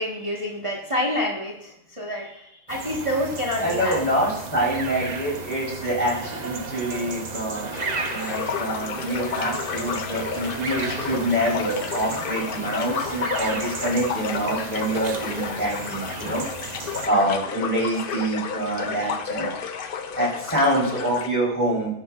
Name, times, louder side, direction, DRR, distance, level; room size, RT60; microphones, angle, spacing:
voice 1, 0.0-4.0 13.9-14.0, left 1 dB, 20° right, -3 dB, 1.5 m, -28 dB
sound 1, 2.7-17.1, right 3 dB, 40° right, 0.6 m, -34 dB
voice 2, 3.6-7.8 8.1-16.4 17.1-19.5 20.1-22.0, right 1 dB, 5° left, -6 dB, 4.2 m, -26 dB
sound 2, 7.7-21.3, left 6 dB, 85° left, 0.4 m, -32 dB
19.5 x 6.7 x 2.5 m, 0.78 s
omnidirectional pair, 1.7 m